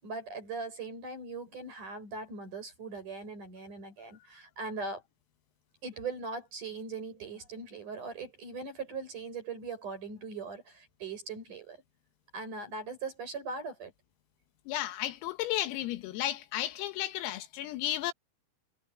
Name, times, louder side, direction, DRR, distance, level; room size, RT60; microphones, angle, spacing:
voice 1, 0.0-5.0 5.8-11.8 12.3-13.9, right 4 dB, 40° right, 8.3 m, -40 dB
voice 2, 14.7-18.1, left 14 dB, 90° left, 4.2 m, -33 dB
omnidirectional pair, 5.9 m